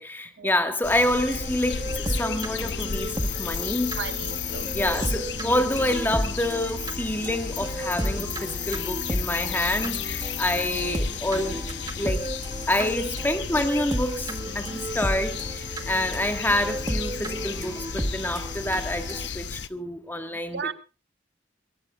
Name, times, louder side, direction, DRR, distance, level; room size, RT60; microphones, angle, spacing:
voice 1, 0.0-4.0 4.7-11.6 12.0-12.3 12.7-20.7, left 1 dB, 10° left, 1.7 m, -27 dB
sound 1, 0.8-19.7, left 6 dB, 80° left, 0.7 m, -33 dB
sound 2, 1.0-19.3, right 1 dB, 25° right, 1.6 m, -33 dB
sound 3, 2.2-9.2, equal, 55° right, 8.0 m, -46 dB
voice 2, 3.9-5.0 20.5-20.7, right 6 dB, 70° right, 0.8 m, -35 dB
21.5 x 21.5 x 2.4 m
head